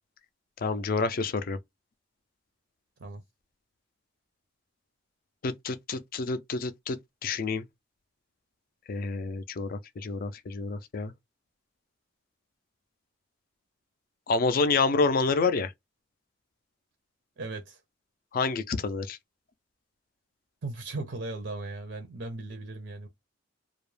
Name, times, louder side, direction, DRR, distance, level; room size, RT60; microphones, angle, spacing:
voice 1, 0.6-1.6 5.4-7.6 8.9-11.1 14.3-15.7 18.3-19.2, left 4 dB, 45° left, 0.4 m, -28 dB
voice 2, 17.4-17.8 20.6-23.1, right 2 dB, 60° right, 0.5 m, -37 dB
2.3 x 2.0 x 3.1 m
head